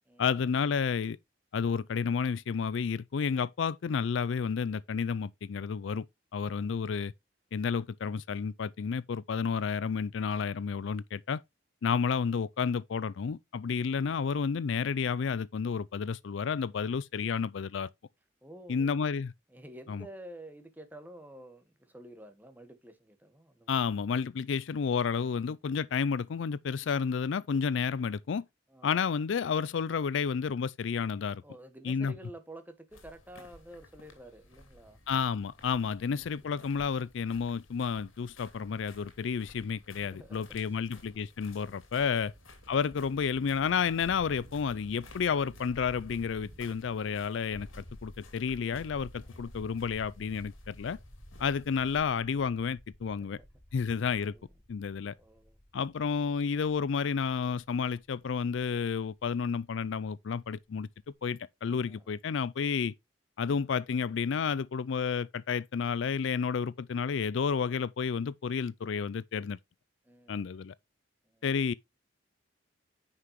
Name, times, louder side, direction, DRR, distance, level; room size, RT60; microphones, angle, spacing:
voice 1, 0.2-1.2 1.5-6.0 6.3-7.1 7.5-11.4 11.8-17.9 18.7-19.3 19.9-20.1 23.7-28.4 28.8-31.4 31.8-32.1 35.1-42.3 42.7-51.0 51.4-53.4 53.7-54.3 54.7-55.1 55.7-60.9 61.2-62.9 63.4-69.6 70.3-70.7 71.4-71.7, left 6 dB, 70° left, 0.4 m, -31 dB
voice 2, 6.5-6.8 13.7-13.9 18.4-19.0 19.5-23.8 28.7-29.0 31.4-35.0 35.8-36.6 40.0-40.9 42.0-42.3 49.2-49.5 54.3-54.5 55.1-55.6 61.9-62.0 70.0-70.4 71.2-71.5, right 1 dB, 10° right, 1.5 m, -50 dB
sound 1, 32.9-52.1, left 2 dB, 90° left, 2.7 m, -56 dB
sound 2, 42.2-47.0, right 2 dB, 75° right, 1.2 m, -54 dB
sound 3, 44.0-59.8, equal, 50° left, 4.6 m, -53 dB
9.7 x 5.6 x 3.1 m
head